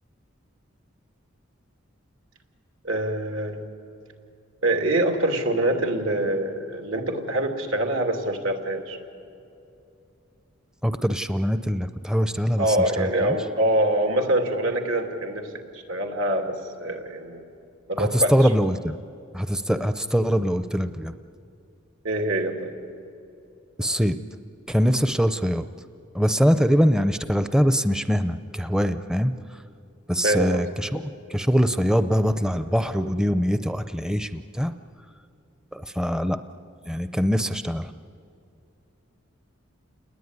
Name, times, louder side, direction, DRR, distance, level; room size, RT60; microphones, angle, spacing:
voice 1, 2.8-3.6 4.6-9.0 12.6-15.5 15.9-17.4 17.9-18.3 22.0-22.7 30.2-30.6, right 1 dB, 80° right, 4 dB, 2.8 m, -24 dB
voice 2, 10.8-13.4 18.0-19.0 19.3-21.1 23.8-24.2 24.7-25.7 26.1-29.6 30.1-34.7 35.7-36.4 36.8-37.9, equal, 5° right, 10 dB, 0.5 m, -23 dB
29.0 x 20.5 x 9.7 m, 2.7 s
head